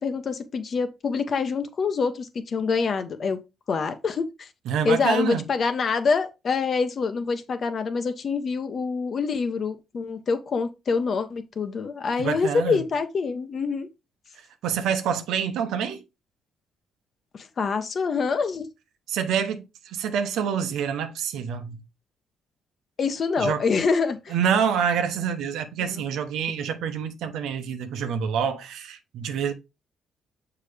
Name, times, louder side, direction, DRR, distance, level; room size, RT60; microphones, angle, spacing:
voice 1, 0.0-3.4 3.7-4.5 4.8-13.9 17.3-18.7 23.0-24.3 25.9-26.1, left 5 dB, 50° left, 1.1 m, -26 dB
voice 2, 4.7-5.4 12.2-12.9 14.6-16.0 19.1-21.8 23.4-23.6 24.3-29.5, right 7 dB, 85° right, 0.9 m, -27 dB
6.8 x 4.8 x 3.4 m
cardioid pair, 90°, 0 cm